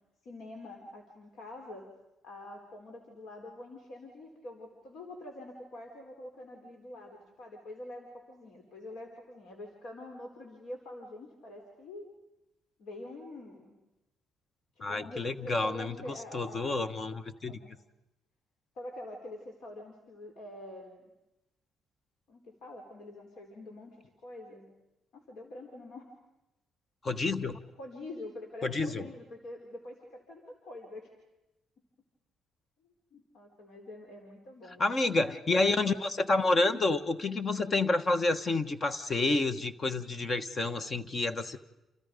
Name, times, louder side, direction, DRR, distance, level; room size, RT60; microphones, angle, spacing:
voice 1, 0.2-1.8 2.2-12.1 12.8-13.7 14.8-16.8 17.5-17.7 18.8-21.1 22.3-24.7 25.1-26.1 27.8-31.1 33.1-34.9, left 1 dB, 75° left, 2 dB, 4.0 m, -46 dB
voice 2, 14.8-17.6 27.0-27.6 28.6-29.0 34.8-41.6, left 2 dB, 40° left, 11 dB, 1.3 m, -29 dB
29.5 x 28.5 x 5.3 m, 0.93 s
cardioid pair, 90°, 0 cm